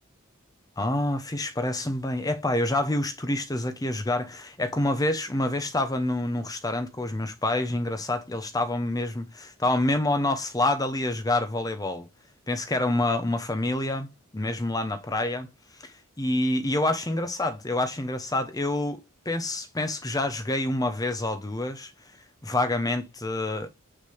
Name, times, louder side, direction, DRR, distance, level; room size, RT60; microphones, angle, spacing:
voice 1, 0.8-12.1 12.5-14.1 14.3-15.5 15.8-21.9 22.4-23.7, left 2 dB, 20° left, 0.9 m, -27 dB
7.4 x 6.6 x 3.3 m
head